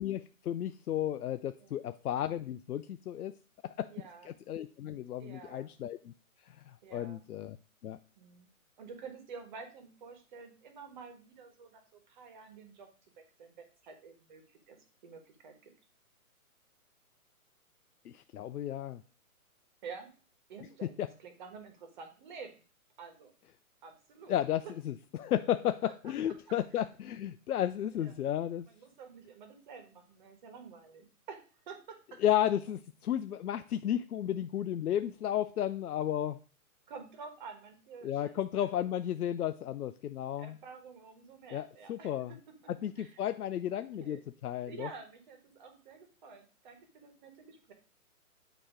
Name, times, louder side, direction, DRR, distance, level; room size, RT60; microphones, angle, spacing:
voice 1, 0.0-3.3 3.6-3.9 4.3-6.1 6.7-7.6 7.8-8.0 18.1-19.0 20.8-21.1 24.3-28.7 32.2-36.4 38.0-40.5 41.5-42.3 42.7-44.9, left 11 dB, 90° left, 10 dB, 0.6 m, -33 dB
voice 2, 3.9-4.3 5.2-5.7 6.8-7.2 8.2-8.5 8.8-12.9 13.4-14.8 15.0-15.7 19.8-20.1 20.5-22.5 23.0-23.3 23.8-24.3 25.8-25.9 26.2-26.3 27.9-28.1 28.7-31.4 31.7-32.0 36.9-38.9 40.4-42.2 43.0-43.2 43.7-44.2 44.7-47.7, right 5 dB, 35° right, 5 dB, 1.3 m, -49 dB
8.9 x 3.0 x 4.9 m, 0.36 s
hypercardioid pair, 155°, 44 cm